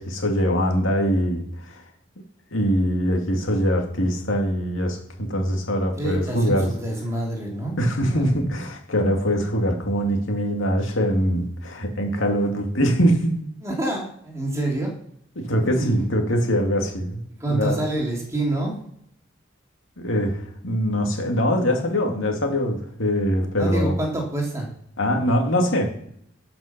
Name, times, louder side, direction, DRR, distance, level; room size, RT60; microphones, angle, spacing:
voice 1, 0.0-1.8 2.5-6.7 7.8-13.4 15.4-17.2 17.4-17.8 20.0-24.0 25.0-25.9, equal, 90° left, 2 dB, 2.4 m, -23 dB
voice 2, 6.0-7.8 8.1-8.3 13.6-14.9 15.6-16.1 17.4-18.8 23.6-24.7, right 2 dB, 15° right, -2 dB, 2.9 m, -27 dB
12.0 x 6.0 x 5.9 m, 0.68 s
head